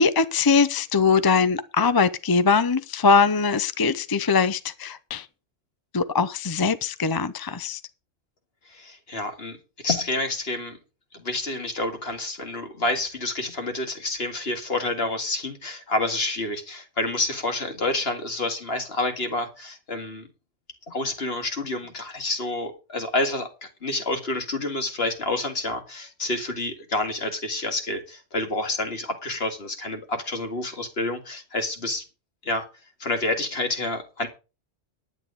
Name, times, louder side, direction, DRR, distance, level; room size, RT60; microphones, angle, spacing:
voice 1, 0.0-5.2 5.9-7.8, left 5 dB, 25° left, 0.5 m, -21 dB
voice 2, 8.7-10.8 11.1-20.3 20.9-32.0 32.4-32.7 33.0-34.3, left 2 dB, 50° left, 2.3 m, -28 dB
10.5 x 9.4 x 5.1 m
omnidirectional pair, 1.3 m